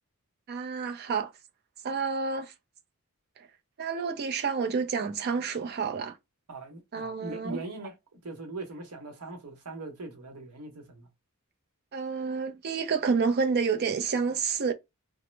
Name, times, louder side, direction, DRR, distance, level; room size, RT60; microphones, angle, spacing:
voice 1, 0.5-1.3 1.8-2.5 3.4-3.5 3.8-6.2 6.9-7.6 11.9-14.7, right 5 dB, 45° right, 0.4 m, -29 dB
voice 2, 6.5-11.1, right 2 dB, 85° right, 0.9 m, -41 dB
3.0 x 2.0 x 3.2 m
head